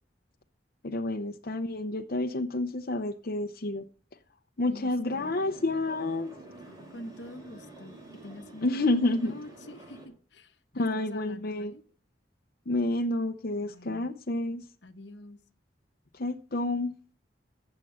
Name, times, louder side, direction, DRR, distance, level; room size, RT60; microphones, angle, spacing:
voice 1, 0.8-3.8 4.6-6.3 8.6-9.3 10.7-11.7 12.7-14.6 16.1-16.9, left 2 dB, 55° left, 0.8 m, -29 dB
voice 2, 4.6-5.4 6.9-11.8 13.6-14.1 14.8-15.4, left 1 dB, 75° left, 1.2 m, -46 dB
sound 1, 5.1-10.1, right 2 dB, 20° right, 6.1 m, -48 dB
15.0 x 7.6 x 5.6 m
head